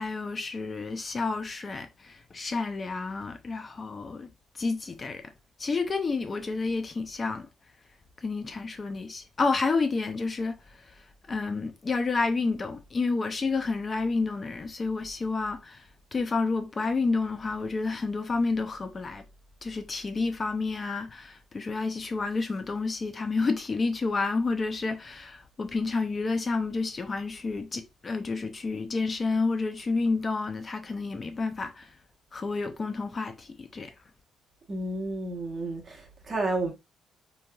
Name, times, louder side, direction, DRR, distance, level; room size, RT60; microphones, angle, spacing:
voice 1, 0.0-4.3 4.5-5.2 5.6-7.5 8.2-10.9 11.3-19.2 19.6-31.9 32.3-33.9, left 3 dB, 35° left, 0.4 m, -30 dB
voice 2, 34.7-36.7, right 2 dB, 35° right, 0.9 m, -31 dB
3.0 x 2.8 x 2.2 m
cardioid pair, 90°, 0 cm